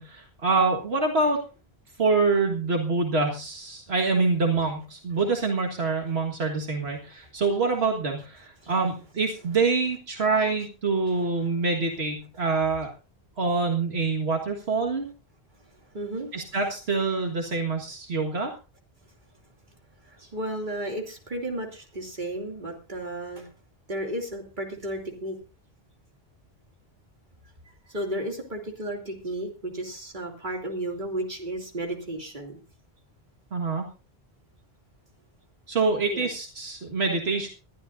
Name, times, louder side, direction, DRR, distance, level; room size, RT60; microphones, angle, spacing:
voice 1, 0.0-1.4 2.0-12.9 13.4-15.1 16.3-18.5 33.5-33.9 35.7-37.5, right 3 dB, 75° right, 2 dB, 1.9 m, -25 dB
voice 2, 15.9-16.3 20.0-23.5 23.9-25.4 27.9-32.6 36.1-36.3, right 1 dB, 45° right, 1 dB, 2.9 m, -33 dB
21.0 x 12.0 x 2.6 m, 0.32 s
omnidirectional pair, 1.1 m